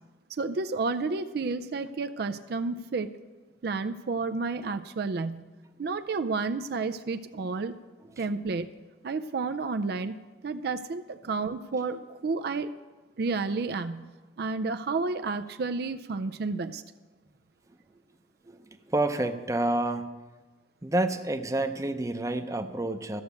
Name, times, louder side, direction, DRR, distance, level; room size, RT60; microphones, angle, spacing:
voice 1, 0.3-3.1 3.6-5.5 5.8-7.8 8.2-8.7 9.0-12.7 13.2-14.1 14.4-16.8, right 4 dB, 60° right, 9 dB, 0.4 m, -31 dB
voice 2, 18.5-20.1 20.8-23.2, right 2 dB, 20° right, 7 dB, 0.7 m, -29 dB
14.0 x 6.5 x 8.2 m, 1.3 s
head